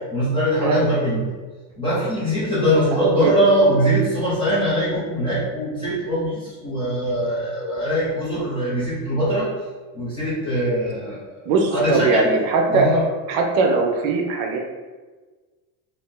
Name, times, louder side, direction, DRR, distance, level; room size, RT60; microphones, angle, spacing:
voice 1, 0.1-1.2 1.7-9.5 9.9-12.3 12.7-13.0, equal, 15° left, -10 dB, 0.4 m, -22 dB
voice 2, 11.5-12.9 13.3-14.6, right 3 dB, 65° right, 2 dB, 0.7 m, -20 dB
2.7 x 2.4 x 3.6 m, 1.3 s
cardioid pair, 175°, 45 cm